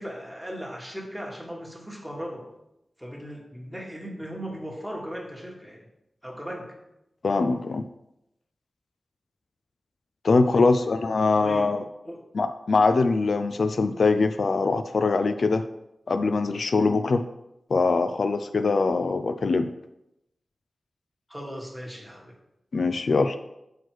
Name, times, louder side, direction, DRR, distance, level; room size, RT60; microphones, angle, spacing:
voice 1, 0.0-2.5 3.0-5.8 6.2-6.7 10.5-10.9 11.4-11.7 12.0-12.2 21.3-22.4, equal, ahead, -1 dB, 1.4 m, -37 dB
voice 2, 7.2-7.8 10.2-11.8 12.3-15.6 16.1-17.2 17.7-19.7 22.7-23.4, left 3 dB, 70° left, 9 dB, 0.3 m, -22 dB
6.4 x 4.6 x 4.6 m, 0.87 s
wide cardioid pair, 100°, 0 cm